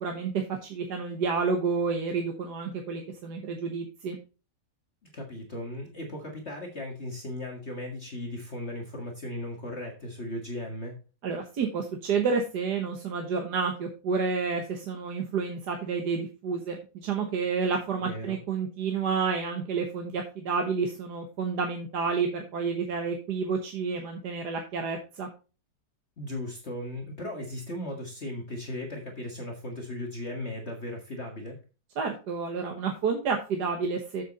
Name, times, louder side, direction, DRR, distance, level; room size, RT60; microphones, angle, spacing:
voice 1, 0.0-4.2 11.2-25.3 32.0-34.2, right 5 dB, 70° right, 3 dB, 1.7 m, -30 dB
voice 2, 5.0-11.0 18.0-18.4 26.2-31.6, left 1 dB, 40° left, 1 dB, 1.8 m, -37 dB
7.7 x 7.4 x 4.0 m, 0.33 s
omnidirectional pair, 1.9 m